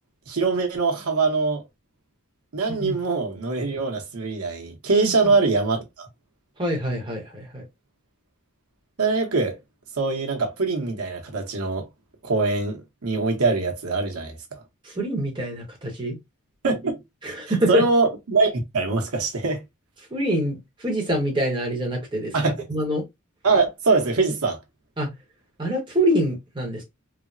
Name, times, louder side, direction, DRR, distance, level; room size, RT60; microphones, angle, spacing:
voice 1, 0.3-1.6 2.5-6.1 9.0-9.6 10.0-11.8 12.2-14.4 16.6-17.0 17.3-19.6 22.3-22.5 23.4-24.6, right 3 dB, 80° right, 0.9 m, -23 dB
voice 2, 4.9-5.3 6.6-7.6 14.8-16.2 17.2-17.8 20.1-23.0 25.0-25.1 25.6-26.8, equal, 20° right, 0.9 m, -25 dB
3.3 x 2.0 x 2.5 m
head